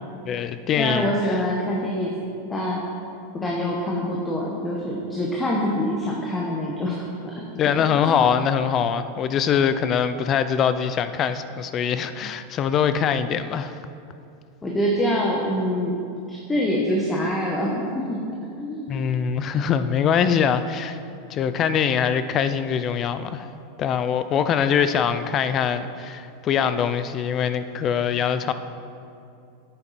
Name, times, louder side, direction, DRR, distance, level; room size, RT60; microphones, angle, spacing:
voice 1, 0.3-1.4 7.6-13.7 18.9-21.0 21.3-23.5 23.8-28.5, left 7 dB, 35° left, 11 dB, 0.5 m, -23 dB
voice 2, 0.8-2.1 2.5-2.8 3.3-7.1 7.6-8.1 14.6-16.0 16.3-18.2 18.6-18.9, equal, 15° left, -2 dB, 1.2 m, -25 dB
10.5 x 8.8 x 4.2 m, 2.5 s
supercardioid pair, 130°, 0 cm